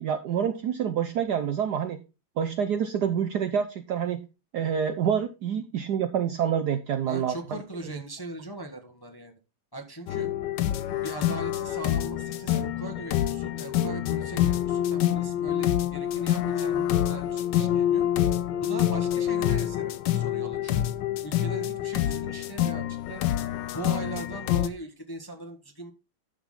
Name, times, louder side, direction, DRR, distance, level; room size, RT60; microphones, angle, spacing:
voice 1, 0.0-2.0 2.4-4.2 4.5-7.6, right 8 dB, 65° right, 9 dB, 1.0 m, -27 dB
voice 2, 7.1-9.4 9.7-10.3 11.0-18.1 18.6-20.8 21.2-23.3 23.6-25.9, right 2 dB, 15° left, 4 dB, 1.0 m, -40 dB
sound 1, 10.1-24.7, left 11 dB, 70° left, 1.2 m, -27 dB
11.5 x 6.5 x 3.8 m, 0.29 s
omnidirectional pair, 2.3 m